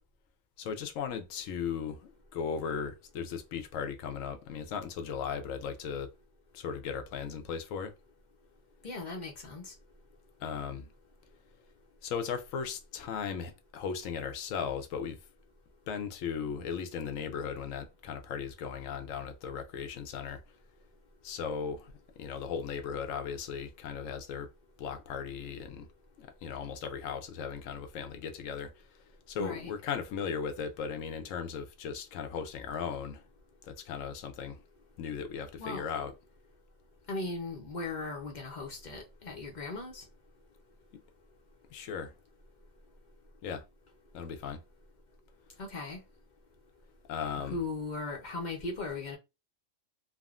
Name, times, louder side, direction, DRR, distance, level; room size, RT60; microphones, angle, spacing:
voice 1, 0.6-6.1 6.5-7.9 10.4-10.9 12.0-15.2 15.9-20.4 21.2-24.5 24.8-25.9 26.2-33.2 33.6-34.6 35.0-36.1 41.7-42.1 43.4-43.6 44.1-44.6 47.1-47.6, left 6 dB, 90° left, 1.0 m, -37 dB
voice 2, 8.8-9.7 29.4-29.7 35.6-35.8 37.1-40.0 45.6-46.0 47.5-49.2, left 3 dB, 45° left, 0.6 m, -38 dB
3.5 x 2.1 x 2.3 m
omnidirectional pair, 1.3 m